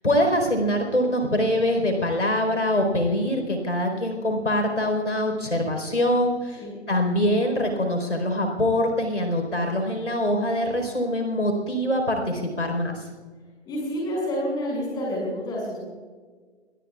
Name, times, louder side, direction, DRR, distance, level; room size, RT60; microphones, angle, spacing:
voice 1, 0.0-13.1, left 1 dB, 90° left, 4 dB, 4.5 m, -24 dB
voice 2, 13.7-15.8, equal, 10° left, -2 dB, 6.3 m, -28 dB
24.5 x 21.0 x 2.4 m, 1.5 s
figure-of-eight pair, 140°, 35 cm